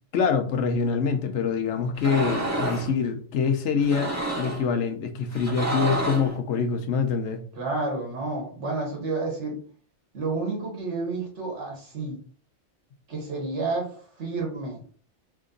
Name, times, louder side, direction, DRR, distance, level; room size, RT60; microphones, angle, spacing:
voice 1, 0.1-7.4, left 5 dB, 70° left, 6 dB, 1.0 m, -25 dB
sound 1, 1.9-2.9 3.8-4.7 5.3-6.3, right 2 dB, 15° right, 0.6 m, -29 dB
voice 2, 7.5-9.6 10.1-12.2 13.1-13.9 14.2-14.8, right 3 dB, 70° right, -1 dB, 1.8 m, -30 dB
3.6 x 2.6 x 3.8 m, 0.43 s
omnidirectional pair, 1.3 m